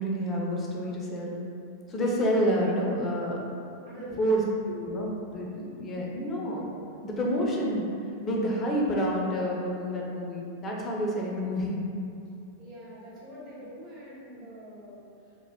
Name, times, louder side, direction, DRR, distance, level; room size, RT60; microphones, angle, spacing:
voice 1, 0.0-1.4 1.9-3.4 4.2-4.4 4.7-6.7 7.0-7.9 8.2-11.8, equal, 25° left, -3 dB, 0.5 m, -28 dB
voice 2, 3.8-4.3 12.6-15.1, right 1 dB, 30° right, -9 dB, 1.0 m, -44 dB
2.1 x 2.0 x 3.4 m, 2.6 s
figure-of-eight pair, 90°, 0 cm